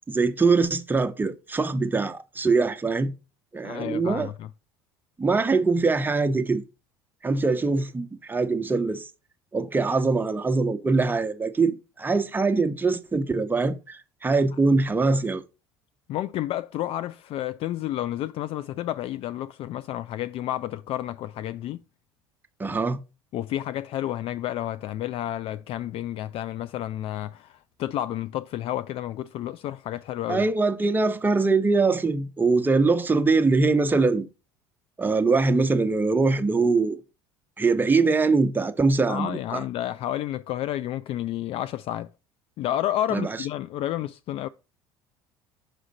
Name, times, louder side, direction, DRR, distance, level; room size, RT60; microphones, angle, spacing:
voice 1, 0.1-3.1 3.5-4.3 5.2-6.6 7.2-9.1 9.5-15.4 22.6-23.0 30.3-34.3 35.0-37.0 37.6-39.6 43.1-43.4, right 3 dB, 15° right, 0.9 m, -23 dB
voice 2, 3.6-4.5 16.1-21.8 23.3-30.4 39.1-42.1 42.6-44.5, left 13 dB, 50° left, 0.4 m, -30 dB
6.2 x 4.9 x 4.1 m
hypercardioid pair, 75°, 12 cm